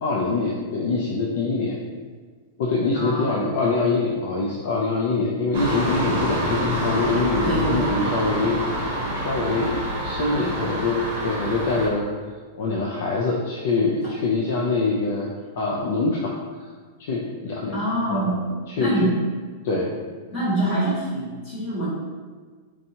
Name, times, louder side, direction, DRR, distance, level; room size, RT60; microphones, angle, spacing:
voice 1, 0.0-1.8 2.6-9.8 10.0-12.1 12.6-15.3 15.6-16.3 17.0-17.8 18.1-18.4 18.7-19.1 19.6-20.0, left 3 dB, 50° left, -2 dB, 0.4 m, -24 dB
voice 2, 2.9-3.5 7.4-8.0 10.3-10.7 17.7-19.1 20.3-21.9, right 1 dB, 25° left, -9 dB, 1.4 m, -25 dB
sound 1, 5.5-11.9, right 1 dB, 55° right, 1.0 m, -27 dB
4.5 x 2.7 x 2.7 m, 1.5 s
supercardioid pair, 175°, 0 cm